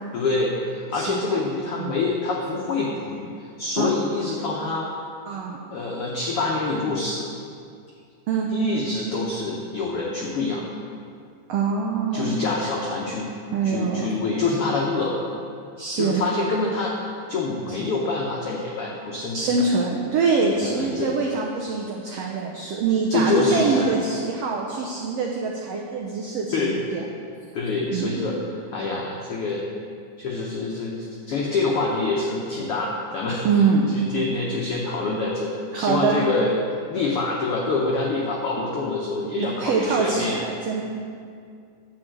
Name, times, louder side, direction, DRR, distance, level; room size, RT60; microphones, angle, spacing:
voice 1, 0.1-4.9 5.7-7.3 8.5-10.6 12.1-13.3 13.6-15.3 15.9-16.9 17.3-19.6 20.5-21.1 23.1-23.9 26.5-26.8 27.5-28.4 28.7-29.6 30.2-33.5 33.9-36.6 36.9-40.4, left 3 dB, 85° left, -2 dB, 1.2 m, -26 dB
voice 2, 0.9-1.4 1.8-1.9 3.8-3.9 5.3-5.6 6.9-7.0 8.3-8.5 11.5-12.4 13.5-14.1 15.8-16.2 17.7-17.8 19.3-27.0 27.9-28.2 33.4-33.9 35.7-36.3 38.6-38.7 39.2-40.8, right 4 dB, 90° right, -1 dB, 1.4 m, -24 dB
11.0 x 4.3 x 7.7 m, 2.3 s
omnidirectional pair, 3.8 m